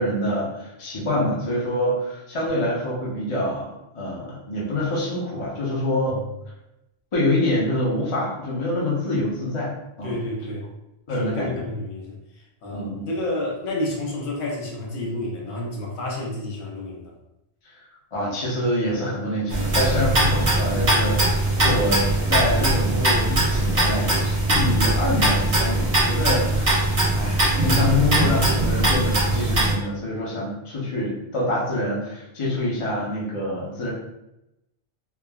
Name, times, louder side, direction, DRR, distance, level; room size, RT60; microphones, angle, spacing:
voice 1, 0.0-3.7 3.9-6.2 7.1-9.7 10.0-10.1 11.1-11.6 12.7-13.1 18.1-33.9, left 1 dB, 35° left, -6 dB, 0.6 m, -26 dB
voice 2, 10.0-10.7 11.1-17.1, left 1 dB, 90° left, -2 dB, 1.0 m, -30 dB
sound 1, 19.5-29.7, right 1 dB, 60° right, 1.1 m, -21 dB
3.3 x 2.0 x 2.3 m, 0.89 s
omnidirectional pair, 1.1 m